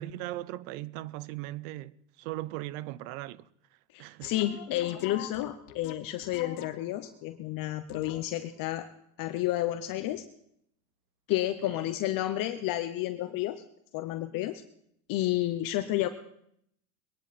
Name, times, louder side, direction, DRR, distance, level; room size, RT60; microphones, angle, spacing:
voice 1, 0.0-3.5 4.0-4.3 5.1-5.2 11.6-11.8, right 16 dB, 70° right, 0.8 m, -38 dB
voice 2, 3.9-8.9 9.2-10.2 11.3-13.6 13.9-14.6 15.1-16.1, left 14 dB, 50° left, 0.9 m, -31 dB
sound 1, 4.2-7.1 7.9-8.5, left 12 dB, 90° left, 1.2 m, -45 dB
22.0 x 10.5 x 4.2 m
supercardioid pair, 110°, 43 cm